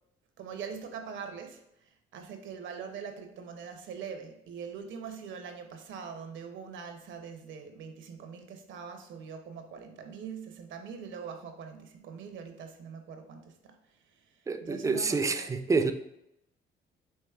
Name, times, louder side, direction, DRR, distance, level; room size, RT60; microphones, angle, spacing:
voice 1, 0.4-13.7 14.2-14.3 14.6-15.5, right 6 dB, 75° right, 6 dB, 0.6 m, -43 dB
voice 2, 14.5-15.9, right 4 dB, 15° right, 8 dB, 0.3 m, -28 dB
4.5 x 3.0 x 2.3 m, 0.83 s
cardioid pair, 90°, 20 cm